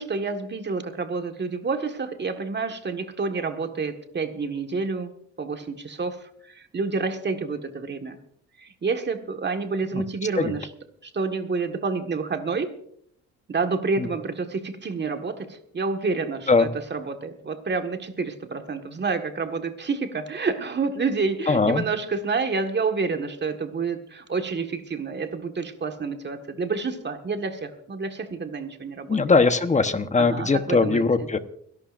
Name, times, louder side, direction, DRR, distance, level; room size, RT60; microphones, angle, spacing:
voice 1, 0.0-8.2 8.6-10.7 11.0-12.7 13.5-29.2 30.2-31.0, right 4 dB, 35° right, 6 dB, 1.7 m, -29 dB
voice 2, 21.5-21.8 29.1-31.4, left 4 dB, 25° left, 10 dB, 1.1 m, -20 dB
30.0 x 11.5 x 2.6 m, 0.67 s
cardioid pair, 90°, 30 cm